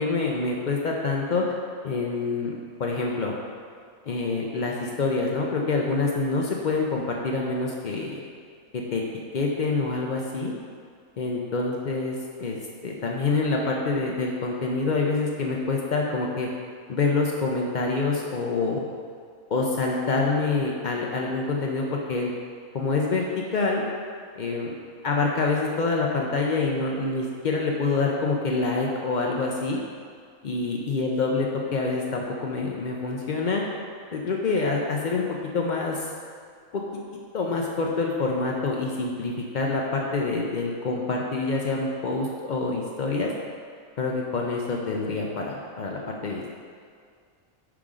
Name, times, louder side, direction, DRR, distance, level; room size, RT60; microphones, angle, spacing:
voice 1, 0.0-1.4 1.8-3.3 4.1-8.2 8.9-9.0 9.3-10.5 11.2-12.6 12.8-16.5 16.9-18.8 19.5-22.3 22.7-23.8 24.4-24.7 25.0-29.8 30.4-33.6 34.1-36.0 36.7-37.0 37.3-43.3 44.0-46.5, left 3 dB, 70° left, -1 dB, 0.4 m, -26 dB
6.1 x 3.6 x 4.9 m, 2.1 s
omnidirectional pair, 1.5 m